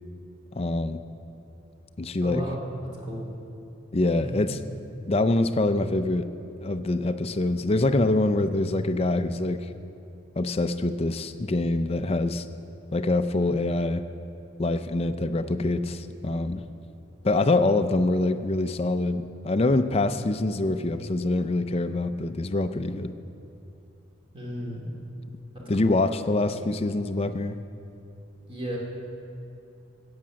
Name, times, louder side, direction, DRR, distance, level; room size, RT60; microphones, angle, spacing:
voice 1, 0.5-1.0 2.0-2.4 3.9-4.5 5.1-6.3 6.6-9.7 10.4-12.5 12.9-14.0 14.6-16.6 17.2-23.1 25.7-27.6, left 2 dB, 30° left, 9 dB, 0.5 m, -25 dB
voice 2, 2.2-2.6 3.0-3.3 24.3-24.9 25.5-26.2 28.5-28.8, equal, 25° right, -3 dB, 2.7 m, -34 dB
14.5 x 8.8 x 6.3 m, 2.8 s
head